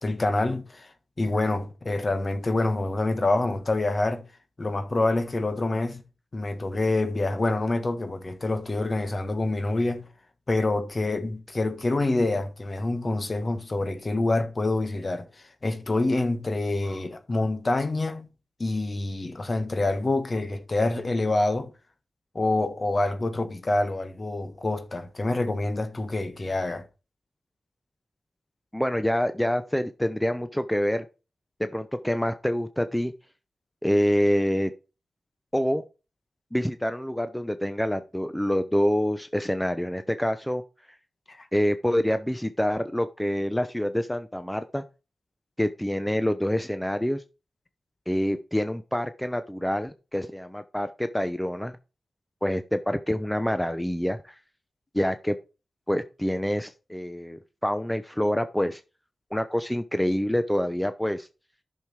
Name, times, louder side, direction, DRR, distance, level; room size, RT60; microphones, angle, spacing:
voice 1, 0.0-4.2 4.6-6.0 6.3-10.1 10.5-18.3 18.6-21.7 22.3-26.9 41.3-41.5, left 2 dB, 40° left, 1.6 m, -26 dB
voice 2, 28.7-31.0 31.6-33.1 33.8-34.7 35.5-35.8 36.5-40.6 41.5-44.8 45.6-47.2 48.1-51.7 52.4-54.3 54.9-55.4 55.9-58.8 59.3-61.3, equal, 5° left, 0.8 m, -26 dB
10.5 x 6.5 x 4.7 m
cardioid pair, 50°, 0 cm